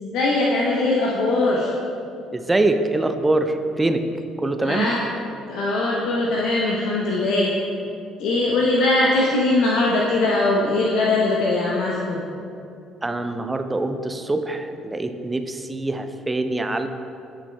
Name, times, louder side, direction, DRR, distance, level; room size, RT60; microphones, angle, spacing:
voice 1, 0.0-1.7 4.6-5.0 5.5-7.5 8.2-12.2, left 2 dB, 60° left, -3 dB, 0.7 m, -21 dB
voice 2, 2.3-4.0 4.4-4.9 13.0-16.9, right 2 dB, 15° right, 8 dB, 0.5 m, -24 dB
14.0 x 5.9 x 2.2 m, 2.6 s
figure-of-eight pair, 50°, 0 cm